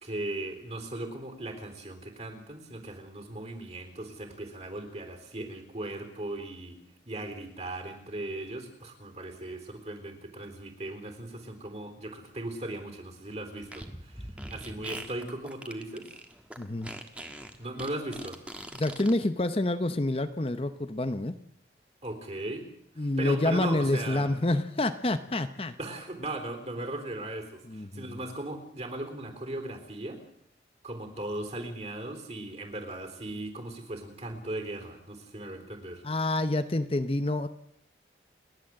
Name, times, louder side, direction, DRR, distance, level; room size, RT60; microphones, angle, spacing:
voice 1, 0.0-6.8 7.1-16.1 17.6-18.4 22.0-22.7 23.0-24.3 25.8-30.2 30.8-36.0, right 1 dB, 35° right, 6 dB, 3.8 m, -38 dB
Fart, 13.6-19.1, right 1 dB, 5° right, 1.5 m, -42 dB
voice 2, 16.6-16.9 18.7-21.4 23.0-25.8 27.6-28.2 36.0-37.5, left 2 dB, 30° left, 10 dB, 0.7 m, -28 dB
29.5 x 11.5 x 7.7 m, 0.74 s
head